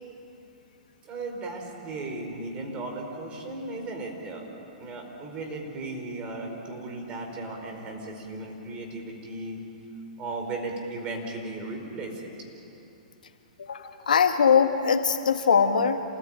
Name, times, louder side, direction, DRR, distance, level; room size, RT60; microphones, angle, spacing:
voice 1, 1.0-4.4 4.8-9.6 10.2-12.3, right 2 dB, 25° right, 2 dB, 4.7 m, -36 dB
voice 2, 13.6-16.0, left 6 dB, 90° left, 6 dB, 1.8 m, -22 dB
28.0 x 19.0 x 9.0 m, 2.8 s
hypercardioid pair, 140°, 4 cm